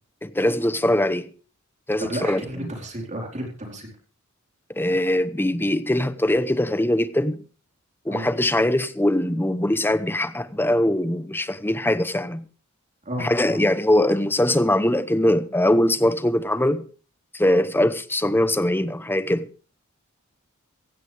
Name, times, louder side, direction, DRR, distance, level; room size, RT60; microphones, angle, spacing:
voice 1, 0.2-1.3 1.9-2.7 4.7-7.4 8.0-12.4 13.2-16.9 17.3-19.5, left 1 dB, 10° left, 0.9 m, -22 dB
voice 2, 2.0-3.9 8.1-8.3 13.0-13.6, right 1 dB, 35° right, 4.3 m, -32 dB
16.0 x 16.0 x 3.4 m
head